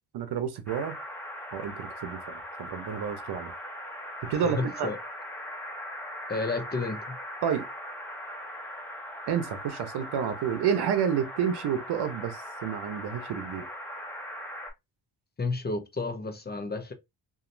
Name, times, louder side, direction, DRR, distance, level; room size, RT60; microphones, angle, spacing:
voice 1, 0.1-1.0 1.5-3.5 4.3-4.9 7.4-7.7 9.3-13.7, right 8 dB, 80° right, 0.9 m, -30 dB
sound 1, 0.7-14.7, equal, 5° left, 1.3 m, -40 dB
voice 2, 4.5-5.0 6.3-7.2 15.4-16.9, left 3 dB, 25° left, 0.8 m, -31 dB
2.9 x 2.7 x 2.6 m
cardioid pair, 100°, 39 cm